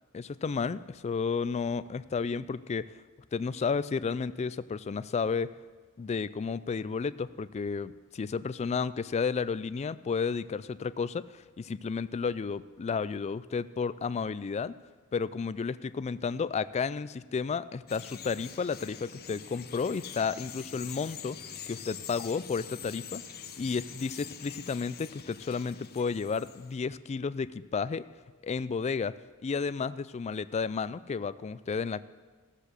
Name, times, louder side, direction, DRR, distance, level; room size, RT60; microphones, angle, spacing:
voice 1, 0.1-2.9 3.3-5.5 6.0-14.7 15.1-21.4 21.7-23.2 23.6-28.0 28.4-29.1 29.4-32.0, left 5 dB, 30° left, 16 dB, 0.3 m, -32 dB
Bird vocalization bird call bird song, 17.9-26.8, left 8 dB, 45° left, 0.8 m, -45 dB
15.0 x 7.5 x 6.6 m, 1.4 s
head